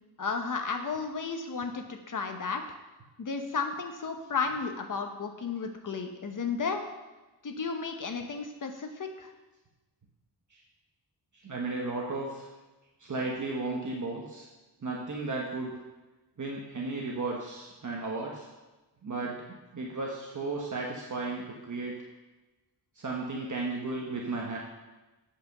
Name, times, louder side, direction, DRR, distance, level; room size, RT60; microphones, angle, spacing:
voice 1, 0.2-2.6 3.2-6.8 7.4-9.3, left 5 dB, 50° left, 5 dB, 1.0 m, -33 dB
voice 2, 11.4-12.5 13.0-14.5 14.8-15.7 16.4-18.5 19.0-21.9 22.9-24.6, right 3 dB, 45° right, -2 dB, 1.2 m, -34 dB
8.3 x 5.1 x 6.7 m, 1.1 s
wide cardioid pair, 170°, 42 cm